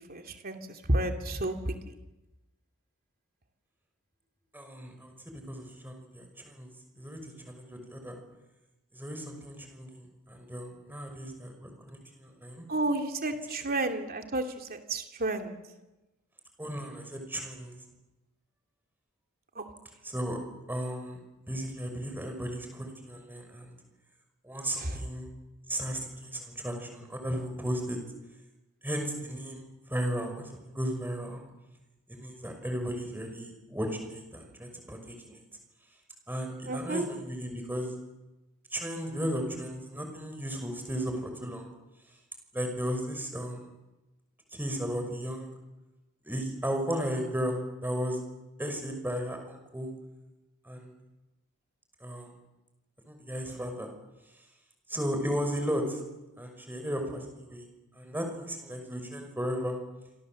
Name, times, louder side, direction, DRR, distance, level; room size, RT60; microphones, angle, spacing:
voice 1, 0.0-1.9 12.7-15.6 19.5-19.7 24.7-25.0 36.7-37.1, right 2 dB, 45° right, 5 dB, 2.8 m, -31 dB
voice 2, 4.5-6.7 7.0-8.1 8.9-12.7 16.6-17.7 20.0-20.4 20.7-21.2 21.5-23.7 24.4-25.3 25.7-28.0 28.8-31.4 32.1-35.4 36.3-37.9 38.7-41.7 42.5-43.7 44.5-45.5 46.2-48.2 48.6-49.9 50.6-50.9 52.0-52.3 53.1-53.9 54.9-56.0 56.4-57.7 57.9-59.8, equal, 10° right, 4 dB, 5.8 m, -35 dB
26.5 x 26.5 x 7.8 m, 1.0 s
head